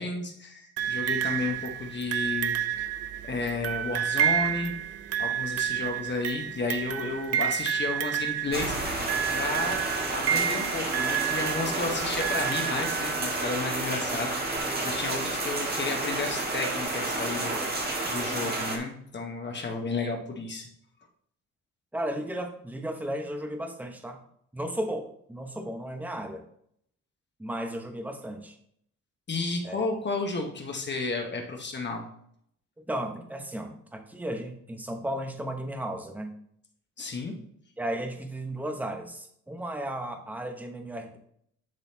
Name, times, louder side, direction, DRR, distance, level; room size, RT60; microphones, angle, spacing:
voice 1, 0.0-2.6 3.2-4.7 5.2-8.8 9.3-9.8 10.1-17.6 18.0-20.7 29.3-32.1 37.0-37.3, left 3 dB, 35° left, 3 dB, 1.1 m, -32 dB
sound 1, 0.8-13.6 14.6-14.7, right 10 dB, 55° right, 0.5 m, -30 dB
sound 2, 8.5-18.8, right 2 dB, 30° right, 1.7 m, -30 dB
voice 2, 21.9-24.2 24.5-26.4 27.4-28.6 29.6-29.9 32.8-36.3 37.8-41.2, right 1 dB, 5° right, 5 dB, 0.9 m, -34 dB
10.5 x 4.0 x 2.8 m, 0.68 s
cardioid pair, 90°, 30 cm